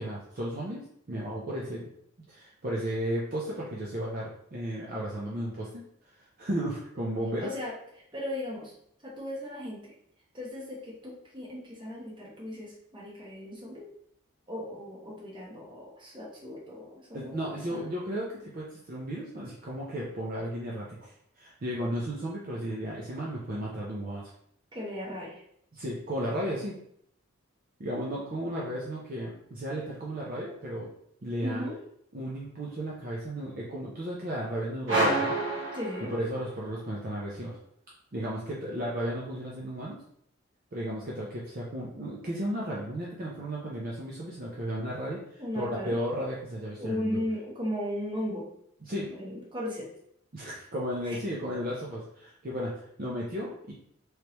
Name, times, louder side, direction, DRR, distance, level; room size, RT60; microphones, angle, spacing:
voice 1, 0.0-1.9 2.3-5.8 6.4-7.5 17.1-24.3 25.7-26.8 27.8-30.9 31.2-31.7 32.1-35.7 36.1-37.6 38.1-40.0 40.7-47.2 48.8-49.1 50.3-53.7, equal, 40° right, -4 dB, 0.6 m, -34 dB
voice 2, 7.4-7.7 8.1-8.7 9.0-9.9 10.3-13.9 14.5-17.9 24.7-25.4 31.4-31.8 35.7-36.1 45.4-46.0 46.8-48.5 49.1-49.9 51.0-51.2, left 1 dB, 20° right, -4 dB, 1.0 m, -36 dB
sound 1, 34.9-36.6, right 2 dB, 65° right, 1.1 m, -28 dB
3.2 x 3.1 x 2.9 m, 0.69 s
head